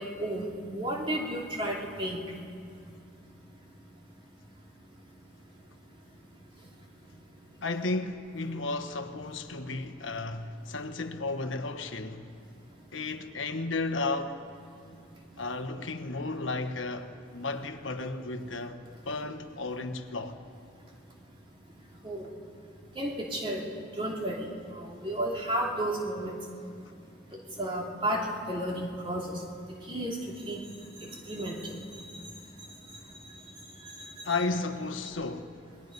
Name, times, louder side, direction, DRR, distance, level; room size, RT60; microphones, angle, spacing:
voice 1, 0.0-2.2 22.0-22.2 23.0-23.6 24.0-24.4 25.0-26.3 27.6-29.3 29.9-30.2 30.5-30.6 31.3-31.7 34.3-34.4, right 1 dB, 25° right, 2.8 m, -32 dB
voice 2, 7.6-12.3 12.9-14.4 15.4-20.4 34.2-35.6, left 3 dB, 90° left, 1.2 m, -33 dB
27.0 x 20.5 x 5.4 m
head